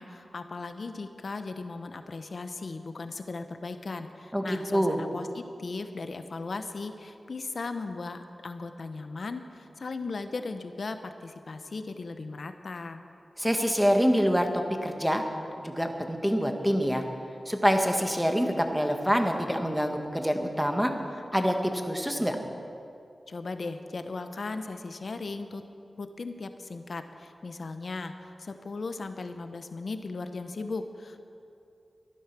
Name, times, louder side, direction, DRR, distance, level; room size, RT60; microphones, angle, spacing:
voice 1, 0.0-13.0 23.3-25.6 26.0-28.1 28.4-31.2, left 3 dB, 70° left, 8 dB, 0.9 m, -37 dB
voice 2, 4.3-5.0 13.4-14.5 14.8-15.2 15.6-17.0 17.5-20.9 21.3-22.4, equal, ahead, 4 dB, 1.5 m, -26 dB
13.5 x 11.0 x 6.1 m, 2.6 s
cardioid pair, 55°, 0 cm